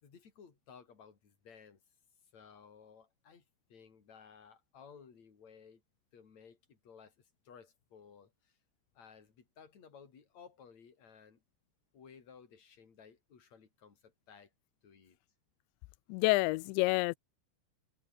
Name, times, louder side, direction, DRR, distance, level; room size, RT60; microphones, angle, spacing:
voice 1, 0.0-1.8 2.3-3.4 3.7-5.8 6.1-8.6 8.9-11.4 11.9-14.5 14.8-15.2, left 6 dB, 35° left, 4.5 m, -57 dB
voice 2, 16.1-17.2, left 24 dB, 90° left, 2.5 m, -28 dB
omnidirectional pair, 5.7 m